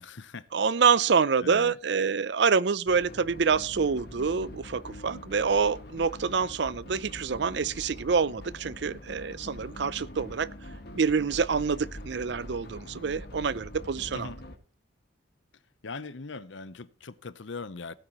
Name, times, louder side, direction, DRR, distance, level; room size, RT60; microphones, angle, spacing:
voice 1, 0.0-0.5 1.4-1.8 14.1-14.4 15.8-17.9, left 4 dB, 70° left, 0.8 m, -40 dB
voice 2, 0.5-10.5 10.9-14.3, right 5 dB, 60° right, 0.5 m, -26 dB
Fast Synth Sound, 2.9-14.6, left 1 dB, 55° left, 1.9 m, -44 dB
17.5 x 8.8 x 3.0 m
head